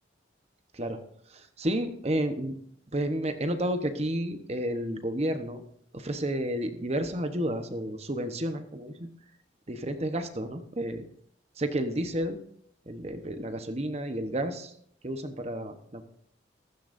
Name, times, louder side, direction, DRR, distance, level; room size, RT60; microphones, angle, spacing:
voice 1, 1.3-2.5 2.9-5.6 5.9-9.1 9.7-11.1 11.6-12.4 12.9-14.7 15.0-16.0, right 1 dB, 35° right, 8 dB, 1.0 m, -31 dB
15.5 x 14.5 x 2.6 m, 0.65 s
head